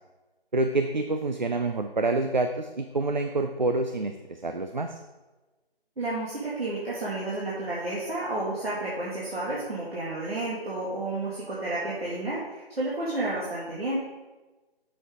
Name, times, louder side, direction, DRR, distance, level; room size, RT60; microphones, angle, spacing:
voice 1, 0.5-4.1 4.4-5.0, right 2 dB, 50° right, 6 dB, 0.5 m, -27 dB
voice 2, 6.0-14.0, right 2 dB, 75° right, -7 dB, 2.3 m, -31 dB
8.1 x 6.5 x 3.7 m, 1.2 s
figure-of-eight pair, 180°, 31 cm